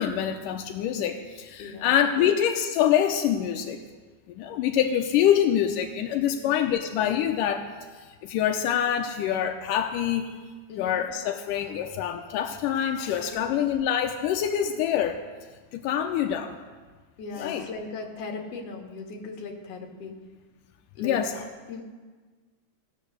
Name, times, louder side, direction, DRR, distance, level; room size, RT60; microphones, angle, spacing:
voice 1, 0.0-3.8 4.3-7.7 8.2-10.4 10.8-15.2 15.7-16.6 17.4-17.6 21.0-21.4, left 9 dB, 85° left, 4 dB, 2.3 m, -25 dB
voice 2, 1.6-2.3 6.2-6.6 10.7-11.1 13.3-13.6 17.2-20.1 21.0-21.2 21.7-21.8, left 4 dB, 55° left, 1 dB, 2.6 m, -38 dB
17.0 x 9.2 x 6.5 m, 1.4 s
omnidirectional pair, 3.7 m